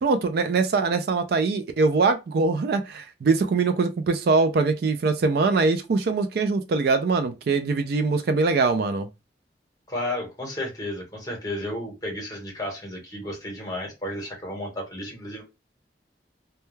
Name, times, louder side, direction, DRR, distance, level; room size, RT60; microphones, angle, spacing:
voice 1, 0.0-9.1, right 4 dB, 60° right, 0.3 m, -22 dB
voice 2, 9.9-15.4, left 1 dB, 20° left, 1.0 m, -33 dB
2.2 x 2.2 x 3.0 m
head